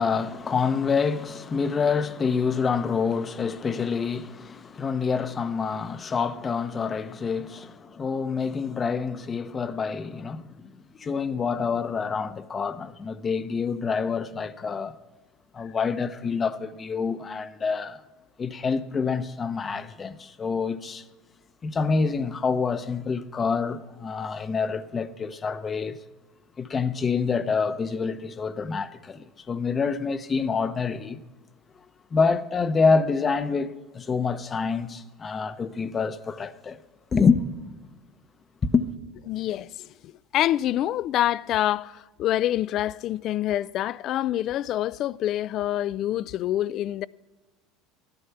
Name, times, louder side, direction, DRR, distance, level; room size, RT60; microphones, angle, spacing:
voice 1, 0.0-15.0 15.5-18.0 18.4-21.0 21.6-26.0 26.6-31.2 32.1-36.8 37.1-37.4 38.7-38.9, left 5 dB, 30° left, 0.8 m, -27 dB
voice 2, 39.3-47.1, left 13 dB, 55° left, 0.3 m, -26 dB
14.0 x 11.5 x 5.7 m
supercardioid pair, 100°, 0 cm